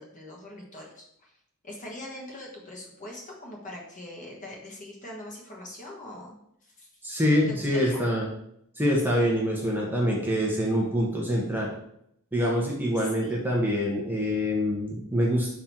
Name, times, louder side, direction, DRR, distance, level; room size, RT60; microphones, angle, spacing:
voice 1, 0.0-1.4 1.6-6.3 6.6-7.0 7.5-8.0 13.0-13.4, left 1 dB, 35° left, -2 dB, 1.3 m, -42 dB
voice 2, 7.0-8.3 8.8-11.7 12.3-15.5, equal, 10° right, -2 dB, 0.9 m, -25 dB
5.8 x 3.7 x 4.4 m, 0.74 s
head